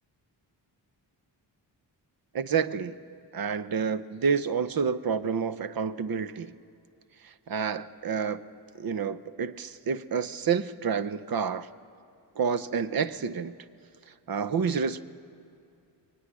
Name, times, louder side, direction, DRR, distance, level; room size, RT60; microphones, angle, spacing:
voice 1, 2.3-3.0 3.3-6.5 7.5-8.4 8.8-11.7 12.4-13.5 14.3-15.0, right 6 dB, 55° right, 13 dB, 0.8 m, -29 dB
25.5 x 23.0 x 9.8 m, 2.6 s
wide cardioid pair, 155°, 43 cm